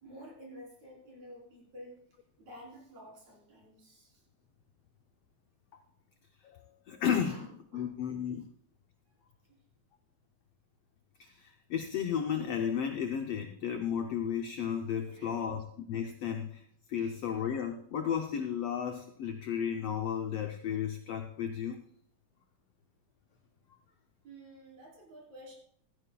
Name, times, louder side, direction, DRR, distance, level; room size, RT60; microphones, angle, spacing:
voice 1, 0.0-2.0 2.4-4.2 7.2-7.9 9.5-9.6 15.1-15.4 16.9-17.1 24.2-25.5, equal, 60° right, -3 dB, 5.0 m, -51 dB
voice 2, 6.4-7.5 7.7-8.4 11.2-15.6 15.9-16.6 16.9-21.8, left 8 dB, 80° left, 5 dB, 1.4 m, -33 dB
16.0 x 13.5 x 2.3 m, 0.64 s
omnidirectional pair, 3.6 m